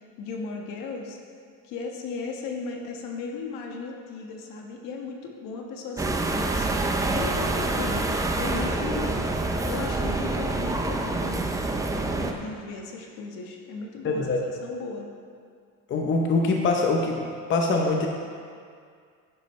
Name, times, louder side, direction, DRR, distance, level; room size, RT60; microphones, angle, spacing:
voice 1, 0.2-1.2 1.6-9.3 9.6-11.6 11.9-15.1, left 4 dB, 75° left, 1 dB, 1.5 m, -36 dB
sound 1, 6.0-12.3, right 2 dB, 10° right, 0.5 m, -27 dB
voice 2, 14.0-14.4 15.9-18.1, left 3 dB, 35° left, 1 dB, 0.8 m, -24 dB
10.5 x 10.0 x 3.2 m, 2.2 s
cardioid pair, 150°, 33 cm